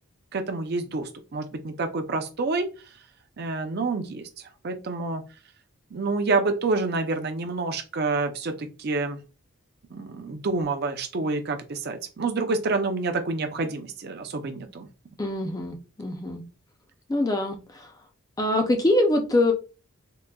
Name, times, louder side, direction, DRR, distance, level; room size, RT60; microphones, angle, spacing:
voice 1, 0.3-2.7 3.4-4.2 4.6-5.2 5.9-9.2 9.9-14.9, right 3 dB, 45° right, 0.4 m, -28 dB
voice 2, 15.2-16.4 17.1-17.9 18.4-19.5, left 1 dB, 15° left, 0.4 m, -24 dB
3.8 x 2.1 x 2.2 m
head